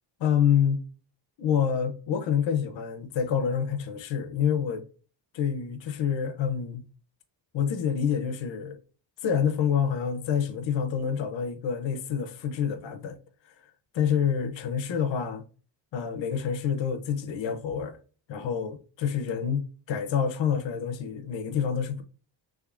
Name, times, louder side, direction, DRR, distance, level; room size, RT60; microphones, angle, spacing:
voice 1, 0.2-0.8 1.4-4.8 5.3-6.8 7.5-8.8 9.2-13.2 13.9-15.4 15.9-18.0 18.3-22.0, left 7 dB, 70° left, 0.6 m, -27 dB
3.5 x 3.2 x 2.4 m
wide cardioid pair, 145°, 46 cm